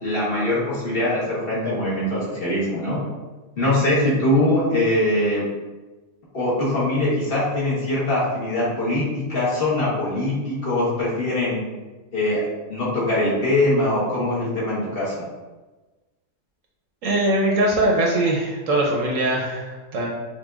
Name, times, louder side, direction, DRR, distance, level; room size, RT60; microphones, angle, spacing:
voice 1, 0.0-3.0 3.6-5.4 6.3-11.6 12.1-12.4 12.7-15.3, left 1 dB, 40° left, -8 dB, 1.3 m, -22 dB
voice 2, 17.0-20.1, right 1 dB, 65° right, -2 dB, 1.0 m, -21 dB
5.5 x 2.7 x 2.4 m, 1.2 s
omnidirectional pair, 1.6 m